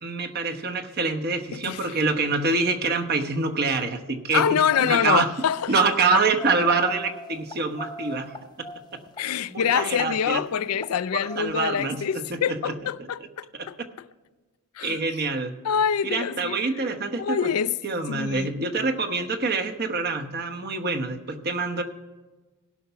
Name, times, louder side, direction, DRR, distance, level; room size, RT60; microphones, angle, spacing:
voice 1, 0.0-5.3 5.7-9.0 9.5-10.4 11.1-12.8 13.6-13.7 14.8-15.6 16.0-17.5 17.8-21.8, right 3 dB, 45° right, 1.0 m, -26 dB
voice 2, 1.5-2.0 4.3-5.7 9.2-13.7 14.8-15.0 15.6-16.6 17.2-17.7 18.1-18.5, left 8 dB, 80° left, 0.4 m, -25 dB
sound 1, 4.7-5.1 5.7-6.0 6.4-9.2 9.7-10.1 10.7-10.9 11.3-11.4, left 1 dB, 20° left, 0.8 m, -38 dB
17.0 x 5.8 x 5.6 m
head